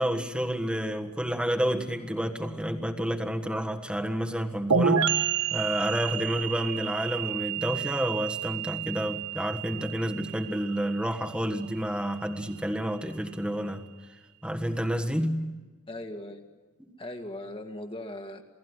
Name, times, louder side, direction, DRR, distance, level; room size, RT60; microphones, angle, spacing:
voice 1, 0.0-13.8 14.4-15.5, equal, 5° right, 4 dB, 1.6 m, -30 dB
sound 1, 4.7-12.3, right 7 dB, 90° right, 1.5 m, -30 dB
voice 2, 15.9-16.4 17.0-18.4, left 1 dB, 25° left, 5 dB, 2.0 m, -39 dB
28.5 x 18.0 x 9.8 m, 1.2 s
head